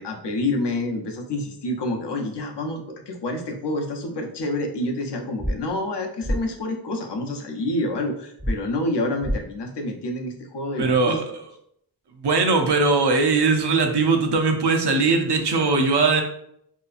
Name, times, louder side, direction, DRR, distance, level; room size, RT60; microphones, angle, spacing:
voice 1, 0.0-11.2, left 1 dB, 80° left, 2 dB, 0.6 m, -28 dB
sound 1, 5.4-5.5 6.2-6.4 8.4-8.5 9.2-9.4, equal, 10° right, 0.3 m, -24 dB
voice 2, 10.8-11.4 12.2-16.2, right 4 dB, 75° right, 4 dB, 0.5 m, -20 dB
2.8 x 2.3 x 2.4 m, 0.70 s
wide cardioid pair, 80°, 41 cm